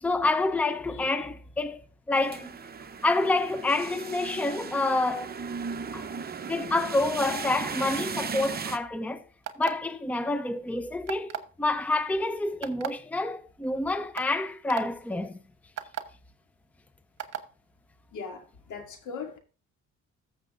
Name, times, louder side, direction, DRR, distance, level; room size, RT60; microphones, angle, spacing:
voice 1, 0.0-1.8 2.1-2.6 3.0-5.3 5.9-6.1 6.5-9.2 9.6-15.4, left 2 dB, 5° left, 0.6 m, -28 dB
sound 1, 2.1-8.8, right 5 dB, 30° right, 0.8 m, -36 dB
sound 2, 9.4-9.9 11.1-11.5 12.6-12.9 13.6-13.7 14.2-14.3 14.7-14.8 15.8-16.0 17.2-17.4, right 10 dB, 55° right, 1.1 m, -34 dB
voice 2, 18.1-19.4, left 5 dB, 75° left, 2.5 m, -39 dB
14.5 x 6.6 x 2.6 m
cardioid pair, 90°, 30 cm